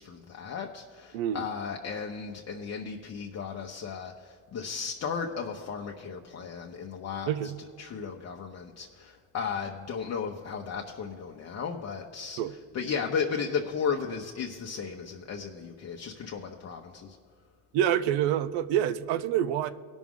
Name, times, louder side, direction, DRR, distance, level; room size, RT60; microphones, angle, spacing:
voice 1, 0.0-7.3 7.8-12.4 12.7-17.2, left 6 dB, 40° left, 0 dB, 0.8 m, -35 dB
voice 2, 1.1-1.4 7.3-7.6 12.4-12.5 17.7-19.7, right 10 dB, 75° right, 13 dB, 0.6 m, -27 dB
18.0 x 6.2 x 3.7 m, 2.1 s
cardioid pair, 100°, 41 cm